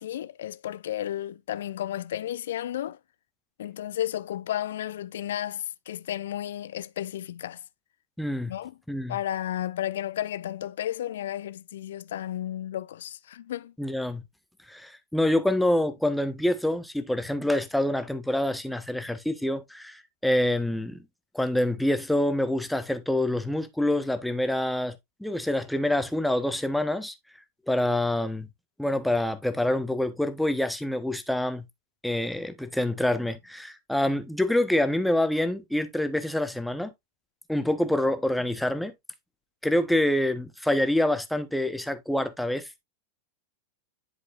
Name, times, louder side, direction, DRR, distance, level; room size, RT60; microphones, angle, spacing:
voice 1, 0.0-3.0 3.6-7.6 8.5-8.7 9.1-13.7, left 12 dB, 60° left, 0.4 m, -33 dB
voice 2, 8.2-8.5 8.9-9.2 13.8-14.2 14.7-21.0 21.3-27.1 27.7-28.5 28.8-31.7 32.0-36.9 37.5-38.9 39.6-42.8, left 1 dB, ahead, 0.9 m, -26 dB
10.5 x 4.8 x 2.4 m
figure-of-eight pair, 90°, 0 cm